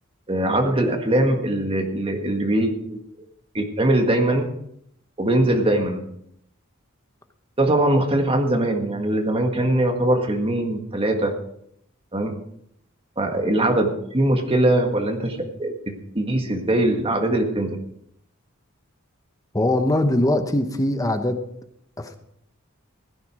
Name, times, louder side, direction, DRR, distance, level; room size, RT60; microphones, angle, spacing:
voice 1, 0.3-3.0 3.5-4.5 5.2-6.0 7.6-11.3 12.1-12.3 13.2-15.7 16.1-17.8, right 1 dB, 25° right, 4 dB, 1.7 m, -21 dB
voice 2, 19.5-21.4 22.0-22.2, left 1 dB, 15° left, 8 dB, 0.9 m, -21 dB
16.0 x 9.4 x 4.8 m, 0.72 s
head